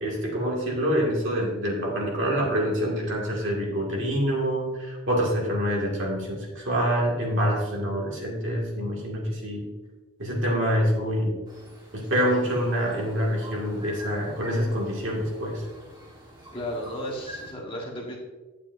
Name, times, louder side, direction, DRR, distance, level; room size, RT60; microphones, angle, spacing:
voice 1, 0.0-9.6 10.2-11.4 11.9-15.6, equal, 55° right, -3 dB, 2.3 m, -26 dB
sound 1, 11.5-17.5, equal, 20° right, 1.5 m, -45 dB
voice 2, 16.5-18.2, equal, 25° left, -2 dB, 1.5 m, -34 dB
10.0 x 8.9 x 2.7 m, 1.2 s
head